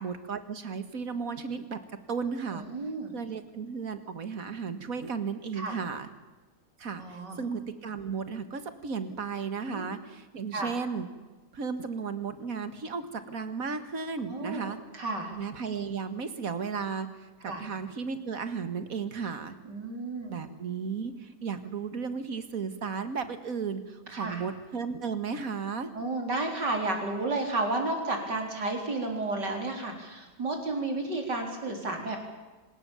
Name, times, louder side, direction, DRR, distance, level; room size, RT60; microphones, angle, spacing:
voice 1, 0.0-1.8 2.1-2.6 3.1-6.1 6.8-11.1 11.5-14.8 15.3-17.1 17.4-19.6 20.3-25.9, right 5 dB, 55° right, 10 dB, 2.1 m, -34 dB
voice 2, 2.5-3.1 5.5-5.8 7.0-7.4 9.7-9.8 10.5-10.7 14.2-15.3 17.5-17.7 19.6-20.3 24.1-24.4 25.9-32.2, right 2 dB, 90° right, 3 dB, 4.7 m, -32 dB
25.5 x 20.0 x 7.1 m, 1.2 s
omnidirectional pair, 1.8 m